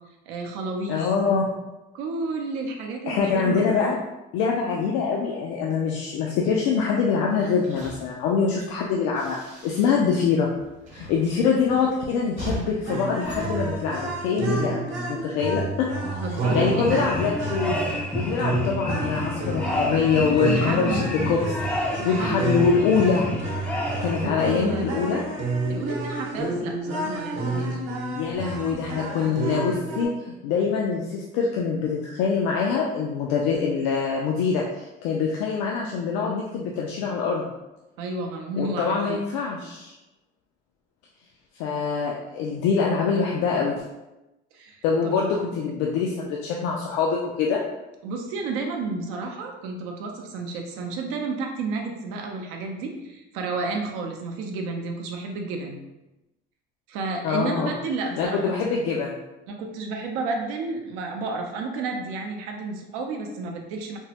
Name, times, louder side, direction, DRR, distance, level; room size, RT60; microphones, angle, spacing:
voice 1, 0.3-1.0 1.9-3.7 16.1-17.0 20.4-21.1 22.0-22.5 24.2-24.9 25.7-27.8 38.0-39.2 44.5-45.5 48.0-55.8 56.9-58.6 59.5-64.0, right 3 dB, 85° right, 2 dB, 0.6 m, -31 dB
voice 2, 0.9-1.6 3.1-4.0 4.3-9.4 9.6-10.5 10.9-14.8 15.1-15.9 16.5-17.8 18.1-21.0 21.3-21.5 21.8-23.3 24.0-25.2 28.2-37.5 38.5-39.9 41.6-43.7 44.8-47.6 57.2-57.7 58.2-59.2, left 5 dB, 85° left, -2 dB, 0.4 m, -24 dB
sound 1, 7.3-10.3 10.5-14.4, right 1 dB, 35° right, 0.7 m, -41 dB
sound 2, 12.8-30.0, right 2 dB, 65° right, 0.9 m, -30 dB
sound 3, 16.4-24.3, left 1 dB, 5° left, 0.4 m, -30 dB
3.5 x 2.0 x 2.8 m, 0.98 s
cardioid pair, 150°, 21 cm